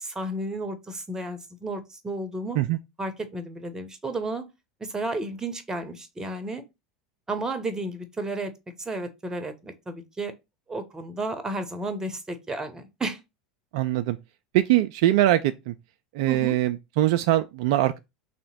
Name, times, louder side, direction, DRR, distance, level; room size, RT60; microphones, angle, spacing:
voice 1, 0.0-2.6 3.0-4.5 4.8-6.6 7.3-8.5 8.8-10.3 10.7-13.2 16.3-16.6, right 2 dB, 15° right, 0.9 m, -32 dB
voice 2, 13.7-14.2 14.5-15.7 16.1-18.0, right 14 dB, 60° right, 0.3 m, -22 dB
3.4 x 2.8 x 4.2 m
hypercardioid pair, 85°, 4 cm